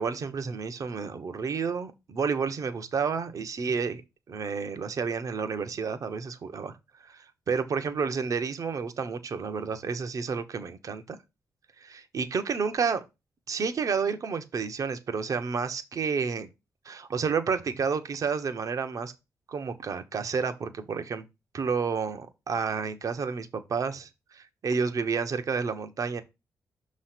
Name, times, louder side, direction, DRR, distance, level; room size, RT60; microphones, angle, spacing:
voice 1, 0.0-4.0 4.3-6.7 7.0-11.2 11.8-13.0 13.5-16.5 16.8-19.1 19.5-21.2 21.5-26.2, right 5 dB, 60° right, 0.9 m, -30 dB
6.2 x 3.2 x 5.8 m
cardioid pair, 85°, 7 cm